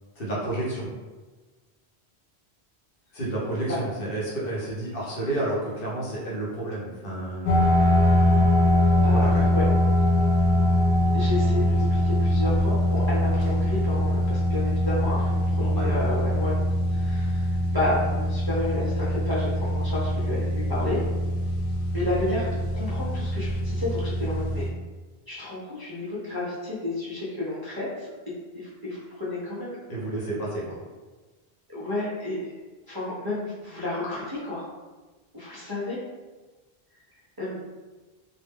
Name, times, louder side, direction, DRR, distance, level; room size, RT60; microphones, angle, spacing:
voice 1, 0.2-0.9 3.1-7.6 9.0-9.6 15.6-15.9 29.9-30.8, right 1 dB, 60° left, -5 dB, 0.9 m, -30 dB
sound 1, 7.5-24.7, left 1 dB, 90° left, 0.9 m, -23 dB
voice 2, 9.0-9.7 11.1-16.6 16.9-21.0 21.9-24.6 25.3-28.1 28.5-29.8 31.7-32.4 32.9-34.7 35.3-36.0 37.4-37.6, left 2 dB, 30° right, -10 dB, 0.5 m, -31 dB
2.1 x 2.1 x 3.4 m, 1.3 s
omnidirectional pair, 1.1 m